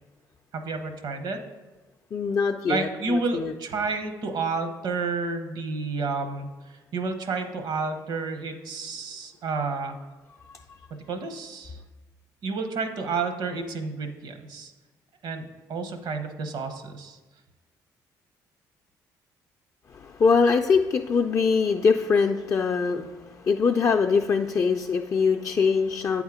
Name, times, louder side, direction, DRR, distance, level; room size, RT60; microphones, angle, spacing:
voice 1, 0.5-1.4 2.7-10.0 11.1-11.8 12.4-14.7 15.2-17.2, right 4 dB, 70° right, 7 dB, 0.8 m, -30 dB
voice 2, 2.1-3.5 10.5-10.6 19.9-26.2, left 5 dB, 40° left, 2 dB, 0.4 m, -23 dB
8.1 x 3.6 x 4.8 m, 1.2 s
supercardioid pair, 70°, 8 cm